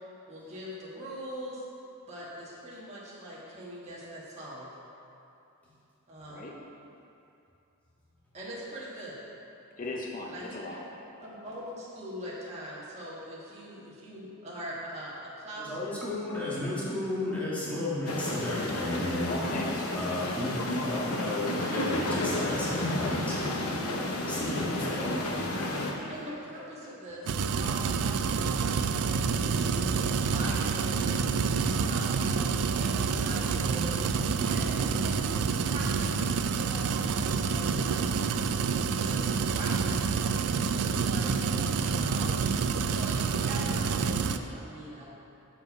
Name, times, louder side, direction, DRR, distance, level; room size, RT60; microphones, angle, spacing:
voice 1, 0.3-1.6 2.1-4.7 6.1-6.5 8.3-9.2 10.3-10.7 11.2-16.0 16.5-16.6 26.0-31.1 31.8-34.0 34.3-35.4 35.7-38.4 39.0-40.1 40.5-42.4 42.7-45.0, right 1 dB, 30° right, -7 dB, 1.4 m, -42 dB
voice 2, 9.8-11.1 19.2-20.3, left 2 dB, 40° left, -1 dB, 0.6 m, -38 dB
voice 3, 15.6-19.4 19.9-23.5 24.2-25.1 25.4-26.1, left 1 dB, 5° left, -9 dB, 1.8 m, -33 dB
sound 1, 18.1-25.9, left 1 dB, 85° left, 0.8 m, -31 dB
sound 2, 27.3-44.4, right 5 dB, 85° right, 0.4 m, -28 dB
7.0 x 5.6 x 5.4 m, 2.7 s
head